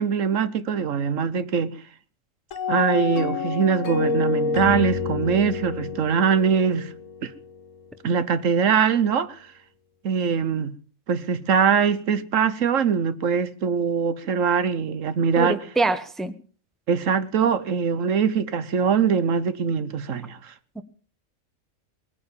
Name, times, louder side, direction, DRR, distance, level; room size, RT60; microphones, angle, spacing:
voice 1, 0.0-1.8 2.7-6.9 7.2-7.3 8.0-9.5 10.0-10.8 11.1-15.6 16.9-20.5, right 6 dB, 80° right, 1.4 m, -22 dB
sound 1, 2.5-7.7, left 5 dB, 75° left, 1.6 m, -28 dB
voice 2, 15.4-16.4 20.8-20.9, right 2 dB, ahead, 0.9 m, -25 dB
20.5 x 9.6 x 7.2 m
omnidirectional pair, 1.3 m